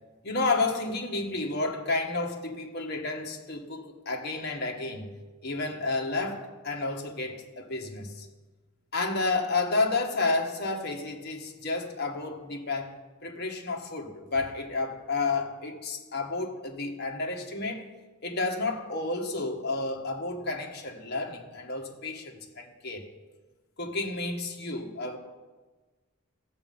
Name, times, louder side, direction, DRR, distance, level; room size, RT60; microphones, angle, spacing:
voice 1, 0.2-5.1 5.4-8.3 8.9-12.9 13.2-17.9 18.2-23.1 23.8-25.2, left 3 dB, 50° left, 1.7 m, -31 dB
15.0 x 7.6 x 5.5 m
head